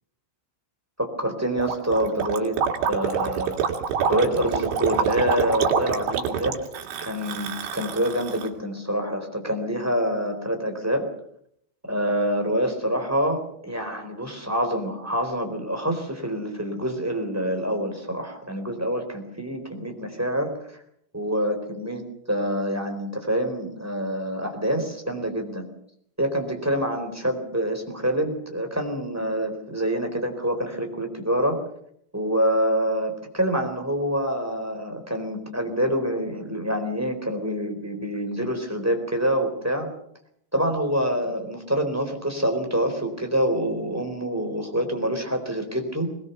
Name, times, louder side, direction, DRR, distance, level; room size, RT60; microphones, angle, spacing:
voice 1, 1.0-2.6 2.9-3.6 4.1-6.6 7.0-11.1 11.8-20.8 21.1-25.7 26.2-31.6 32.1-39.9 40.5-46.1, equal, 5° right, 4 dB, 3.2 m, -26 dB
Gurgling, 1.6-8.5, right 7 dB, 80° right, 4.5 m, -26 dB
21.5 x 21.5 x 6.9 m, 0.71 s
omnidirectional pair, 5.1 m